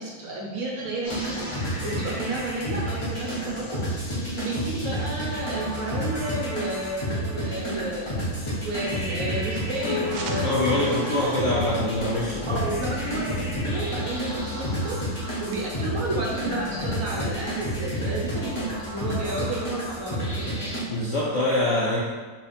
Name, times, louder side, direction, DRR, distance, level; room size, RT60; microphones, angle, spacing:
voice 1, 0.0-3.8 4.2-11.8 12.5-20.6, right 2 dB, 60° right, -3 dB, 1.1 m, -32 dB
sound 1, 1.0-20.8, equal, 20° left, 0.9 m, -30 dB
sound 2, 9.8-20.2, left 4 dB, 85° left, 1.5 m, -39 dB
sound 3, 10.0-16.8, right 3 dB, 85° right, 1.3 m, -46 dB
voice 2, 10.4-12.6 20.9-22.0, left 1 dB, 70° left, -5 dB, 0.7 m, -24 dB
4.6 x 3.2 x 3.3 m, 1.4 s
omnidirectional pair, 1.8 m